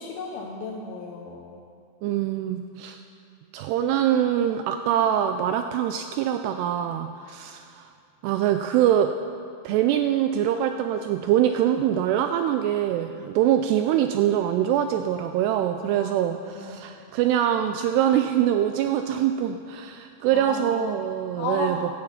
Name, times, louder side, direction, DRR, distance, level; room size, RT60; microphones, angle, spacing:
voice 1, 0.0-1.6 16.0-16.1 16.6-16.9 20.3-20.9 21.4-21.8, left 4 dB, 75° left, 1 dB, 2.2 m, -34 dB
voice 2, 2.0-3.0 3.5-7.9 8.2-9.1 9.6-21.9, right 10 dB, 85° right, 7 dB, 2.4 m, -24 dB
15.5 x 11.5 x 5.7 m, 2.4 s
omnidirectional pair, 5.2 m